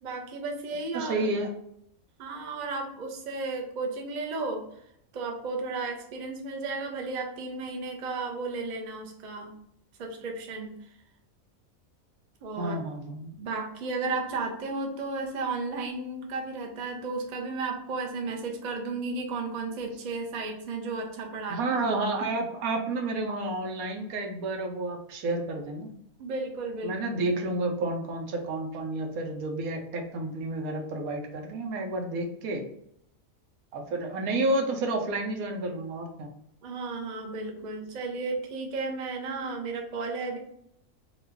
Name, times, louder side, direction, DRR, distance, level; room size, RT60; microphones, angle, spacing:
voice 1, 0.0-1.1 2.2-4.6 5.1-9.5 10.0-10.7 12.4-12.8 13.3-21.6 26.2-27.0 36.6-40.4, right 3 dB, 55° right, 2 dB, 0.4 m, -33 dB
voice 2, 0.9-1.5 12.6-13.3 21.5-25.9 26.8-32.6 33.7-36.3, right 2 dB, 90° right, 3 dB, 1.1 m, -30 dB
3.0 x 2.3 x 3.4 m, 0.72 s
omnidirectional pair, 1.5 m